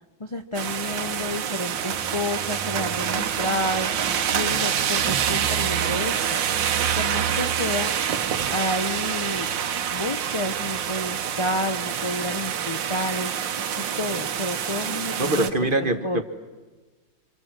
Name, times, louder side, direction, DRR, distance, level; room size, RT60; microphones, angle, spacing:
voice 1, 0.2-6.4 7.0-7.9 8.5-9.5 9.9-15.5 15.8-16.2, left 1 dB, 35° left, 5 dB, 0.5 m, -30 dB
sound 1, 0.5-15.5, right 8 dB, 85° right, 1.7 m, -26 dB
voice 2, 15.2-16.2, right 2 dB, 30° right, 8 dB, 1.3 m, -23 dB
29.5 x 25.5 x 7.5 m, 1.3 s
omnidirectional pair, 1.9 m